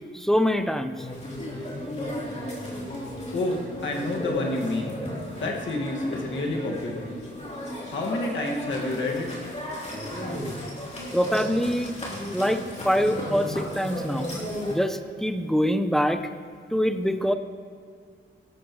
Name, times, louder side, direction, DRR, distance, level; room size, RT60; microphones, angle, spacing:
voice 1, 0.1-1.1 11.1-11.9 12.3-12.6 12.8-14.3 14.7-16.2 16.7-17.3, equal, ahead, 8 dB, 0.7 m, -24 dB
sound 1, 1.0-14.7, left 1 dB, 35° left, 3.3 m, -34 dB
voice 2, 3.3-5.0 5.3-7.1 7.9-9.3, left 2 dB, 70° left, -1 dB, 2.1 m, -29 dB
16.5 x 12.5 x 3.2 m, 2.2 s
wide cardioid pair, 115°, 20 cm